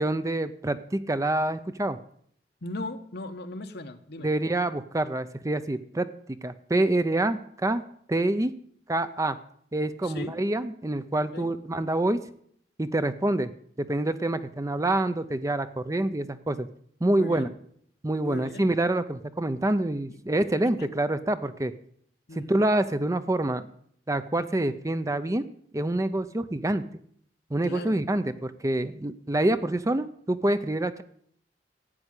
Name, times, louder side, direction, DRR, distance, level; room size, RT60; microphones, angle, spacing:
voice 1, 0.0-2.0 4.2-6.1 6.4-7.8 8.1-8.5 8.9-9.4 9.7-12.2 12.8-13.5 13.8-16.7 17.0-17.5 18.0-21.7 22.4-23.7 24.1-25.4 25.7-26.8 27.5-31.0, right 1 dB, 20° right, 12 dB, 0.6 m, -26 dB
voice 2, 2.6-4.3 10.0-10.4 11.3-11.5 17.2-17.5 18.2-18.7 20.1-20.2 20.8-20.9 22.3-22.6 27.6-28.0, left 2 dB, 65° left, 7 dB, 1.3 m, -38 dB
12.5 x 8.7 x 8.2 m, 0.64 s
head